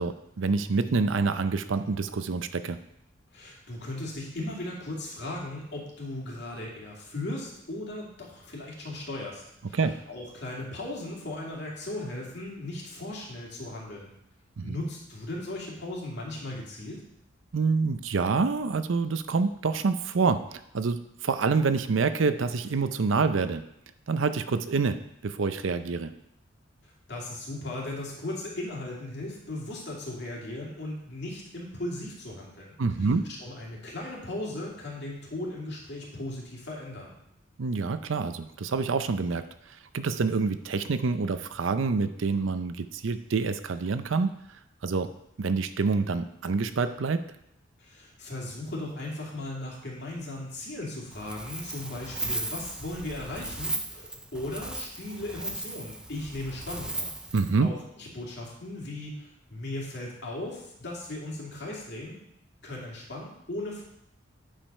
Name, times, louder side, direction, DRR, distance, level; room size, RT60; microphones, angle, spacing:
voice 1, 0.0-2.8 9.7-10.0 14.6-14.8 17.5-20.4 20.7-23.6 24.1-26.1 32.8-33.3 37.6-44.4 44.8-45.1 45.4-47.2 57.3-57.7, right 4 dB, 70° right, 11 dB, 0.5 m, -27 dB
voice 2, 3.3-9.8 10.1-14.1 14.6-17.0 27.1-33.1 33.4-37.1 47.8-57.1 57.6-62.2 62.6-63.8, left 1 dB, 55° left, -3 dB, 2.5 m, -37 dB
Wind, 51.1-57.6, right 2 dB, 5° right, 0.4 m, -36 dB
8.8 x 5.1 x 5.4 m, 0.78 s
head